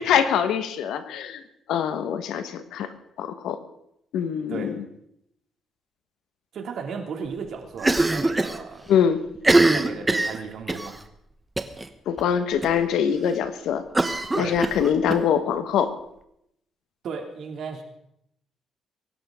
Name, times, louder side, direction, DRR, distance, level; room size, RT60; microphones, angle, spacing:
voice 1, 0.0-1.4 1.7-2.9 3.2-3.6 4.1-4.8 8.9-9.2 12.1-13.8 14.4-15.9, left 8 dB, 85° left, 9 dB, 1.5 m, -23 dB
voice 2, 6.5-8.8 9.7-11.0 14.3-14.6 17.0-17.8, right 5 dB, 65° right, 3 dB, 2.7 m, -35 dB
Cough, 7.8-8.6 8.9-9.0 9.4-10.9 11.6-11.9 12.2-12.3 12.6-12.7 13.9-15.2, right 2 dB, 15° right, 1.1 m, -22 dB
23.0 x 12.0 x 3.8 m, 0.77 s
cardioid pair, 120°, 0 cm